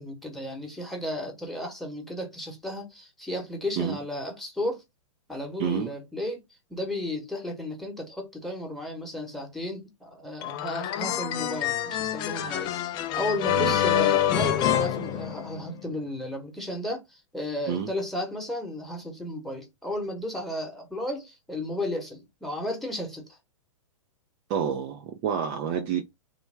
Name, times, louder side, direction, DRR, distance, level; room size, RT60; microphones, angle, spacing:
voice 1, 0.0-4.8 5.3-23.4, left 1 dB, ahead, 1.1 m, -34 dB
voice 2, 5.6-5.9 13.6-13.8 17.7-17.9 24.5-26.0, right 8 dB, 35° right, 0.4 m, -28 dB
sound 1, 10.4-15.8, left 11 dB, 25° left, 0.4 m, -26 dB
3.2 x 2.2 x 3.3 m
hypercardioid pair, 115°, 17 cm